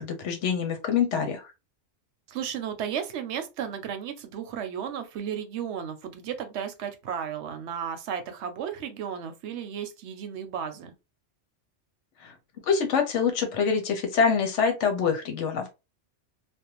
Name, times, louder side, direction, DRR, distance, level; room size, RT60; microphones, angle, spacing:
voice 1, 0.0-1.4 12.2-12.3 12.7-15.7, left 6 dB, 80° left, 1.0 m, -25 dB
voice 2, 2.3-10.9, right 8 dB, 75° right, 0.8 m, -34 dB
2.5 x 2.1 x 2.8 m
omnidirectional pair, 1.2 m